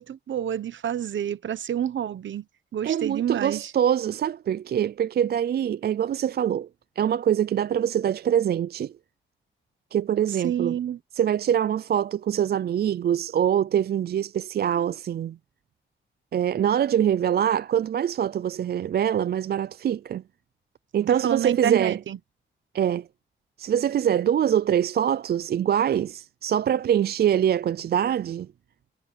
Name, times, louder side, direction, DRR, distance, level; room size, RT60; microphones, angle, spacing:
voice 1, 0.0-2.4 2.7-3.7 10.4-11.0 21.1-22.2, right 9 dB, 70° right, 1.0 m, -28 dB
voice 2, 2.8-6.7 7.0-8.9 9.9-10.7 11.2-15.4 16.3-20.2 20.9-22.0 22.7-23.1 23.6-28.5, right 9 dB, 50° right, 0.4 m, -24 dB
wide cardioid pair, 130°, 20 cm